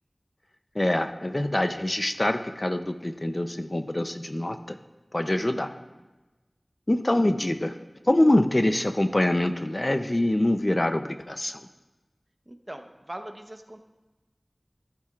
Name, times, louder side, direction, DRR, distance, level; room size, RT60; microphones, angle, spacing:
voice 1, 0.7-4.8 5.1-5.7 6.9-7.8 8.0-11.7, left 1 dB, 40° left, 8 dB, 0.6 m, -25 dB
voice 2, 5.5-6.1 12.5-13.8, right 1 dB, 35° right, 5 dB, 1.0 m, -42 dB
14.5 x 10.5 x 2.5 m, 1.1 s
wide cardioid pair, 45°, 0 cm